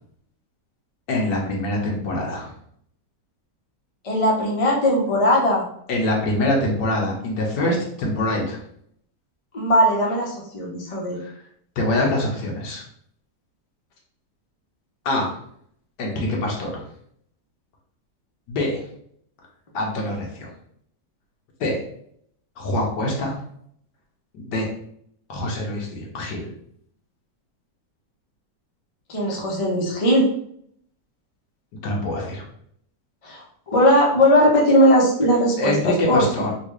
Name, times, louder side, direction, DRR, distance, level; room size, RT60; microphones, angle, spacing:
voice 1, 1.1-2.5 5.9-8.6 11.2-11.3 11.8-12.8 15.0-15.3 16.0-16.8 18.5-18.8 19.7-20.5 21.6-21.8 22.6-23.3 24.3-24.7 25.3-26.5 31.8-32.4 35.6-36.5, left 1 dB, 75° left, -1 dB, 1.5 m, -24 dB
voice 2, 4.0-5.6 9.5-11.2 29.1-30.3 33.2-36.5, equal, 45° left, -2 dB, 0.4 m, -19 dB
3.8 x 2.3 x 3.1 m, 0.67 s
omnidirectional pair, 1.9 m